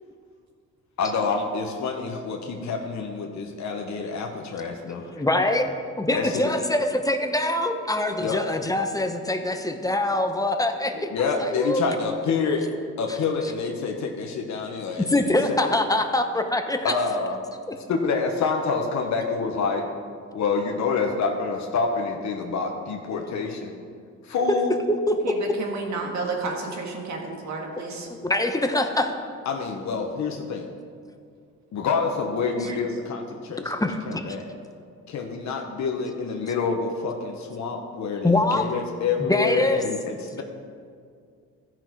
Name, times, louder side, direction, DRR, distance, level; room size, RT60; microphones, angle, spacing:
voice 1, 1.0-5.1 6.1-6.5 8.2-8.4 11.1-12.7 13.0-15.6 16.8-17.4 17.9-19.8 20.3-23.7 24.2-24.8 29.5-30.7 31.7-33.7 34.0-34.5 35.1-40.4, left 4 dB, 65° left, 2 dB, 1.1 m, -27 dB
voice 2, 5.1-5.7 6.0-11.1 11.4-11.8 15.1-16.9 17.7-17.8 24.9-25.4 28.2-29.1 33.6-34.2 38.2-38.6 39.2-39.8, left 1 dB, 10° left, 6 dB, 0.8 m, -24 dB
voice 3, 6.1-6.4 25.2-28.1 32.6-32.8, right 3 dB, 65° right, 1 dB, 1.9 m, -32 dB
14.0 x 6.1 x 4.7 m, 2.2 s
cardioid pair, 90°, 30 cm